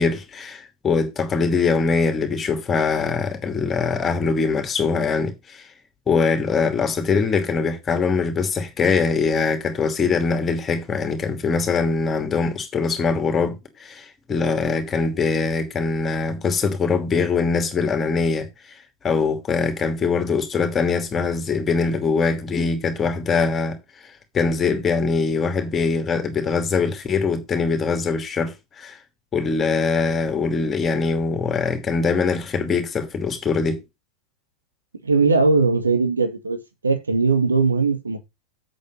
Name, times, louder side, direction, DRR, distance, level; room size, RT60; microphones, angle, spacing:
voice 1, 0.0-5.7 6.1-18.7 19.0-23.8 24.0-29.0 29.3-33.8, left 4 dB, 20° left, 2.7 m, -22 dB
voice 2, 35.0-36.6 36.8-38.2, right 4 dB, 75° right, 2.3 m, -19 dB
8.4 x 7.9 x 5.3 m
figure-of-eight pair, 90°, 0 cm